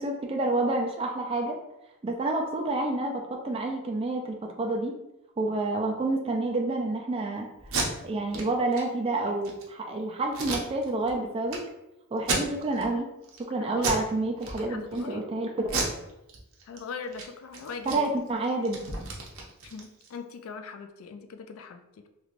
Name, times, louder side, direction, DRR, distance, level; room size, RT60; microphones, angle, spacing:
voice 1, 0.0-1.6 2.0-4.9 5.4-7.5 8.0-11.6 12.1-13.1 13.4-15.5 17.9-18.8, right 2 dB, 25° right, 1 dB, 0.3 m, -29 dB
Packing tape duct tape, 7.6-7.9 8.3-8.4 8.7-8.8 9.3-9.6 10.3-11.1 11.5-11.6 12.2-12.9 13.2-13.4 13.8-14.1 14.4-15.0 15.6-16.8 17.1-17.2 17.5-20.2, right 3 dB, 60° right, 0.7 m, -32 dB
voice 2, 13.6-14.3 14.7-15.3 16.7-18.2 19.6-22.1, left 5 dB, 65° left, 7 dB, 0.3 m, -40 dB
3.1 x 3.0 x 2.5 m, 0.93 s
head